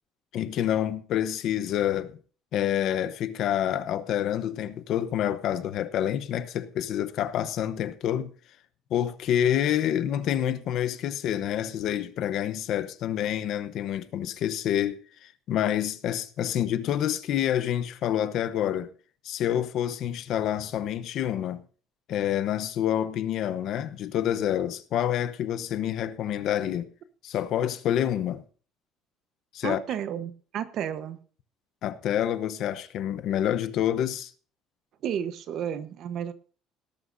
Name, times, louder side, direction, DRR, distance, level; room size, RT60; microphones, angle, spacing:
voice 1, 0.3-2.2 2.5-8.3 8.9-18.9 19.2-21.6 22.1-26.9 27.2-28.4 29.5-29.8 31.8-34.3, left 10 dB, 50° left, 0.9 m, -27 dB
voice 2, 29.6-31.2 35.0-36.3, right 9 dB, 50° right, 1.0 m, -32 dB
18.5 x 11.5 x 2.7 m
cardioid pair, 170°, 0 cm